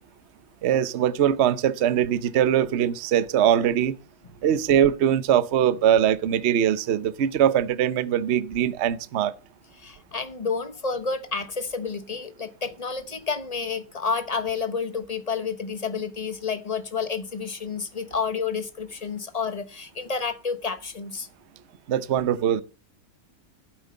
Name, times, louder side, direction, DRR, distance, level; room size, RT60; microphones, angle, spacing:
voice 1, 0.6-4.0 4.4-9.3 21.9-22.6, right 10 dB, 55° right, 0.8 m, -22 dB
voice 2, 9.8-21.3, left 5 dB, 30° left, 0.8 m, -30 dB
12.0 x 8.9 x 5.4 m
omnidirectional pair, 1.9 m